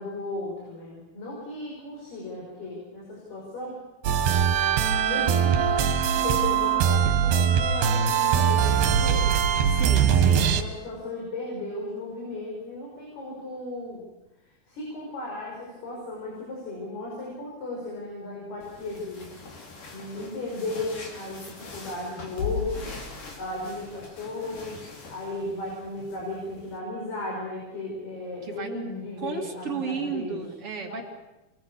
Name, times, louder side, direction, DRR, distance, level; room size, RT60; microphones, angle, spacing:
voice 1, 0.0-3.8 5.1-9.6 10.3-14.0 14.4-19.3 19.9-22.9 23.4-30.4 30.8-31.0, left 2 dB, 70° left, -3 dB, 7.8 m, -35 dB
sound 1, 4.0-10.6, right 8 dB, 80° right, 3.4 m, -22 dB
voice 2, 9.7-10.5 28.4-28.7 29.2-31.0, right 6 dB, 40° right, 1 dB, 3.1 m, -33 dB
sound 2, 18.6-26.8, left 5 dB, 55° left, 4.6 m, -40 dB
27.5 x 22.0 x 7.2 m, 0.98 s
omnidirectional pair, 4.6 m